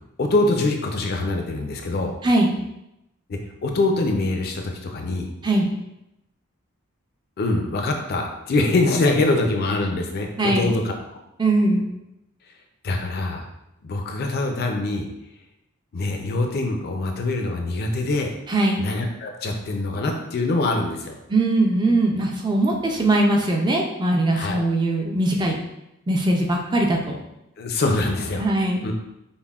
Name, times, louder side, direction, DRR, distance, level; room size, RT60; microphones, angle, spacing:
voice 1, 0.2-2.1 3.6-5.3 7.4-11.2 12.8-13.5 13.8-15.1 15.9-18.3 18.8-21.2 24.3-24.6 27.6-28.4 28.8-28.9, left 2 dB, 45° left, 3 dB, 0.4 m, -24 dB
voice 2, 10.4-10.7 11.4-11.8 18.5-18.8 21.3-25.6 26.1-27.2 28.4-28.9, right 2 dB, 20° right, 1 dB, 0.4 m, -21 dB
5.3 x 2.1 x 2.3 m, 0.87 s
head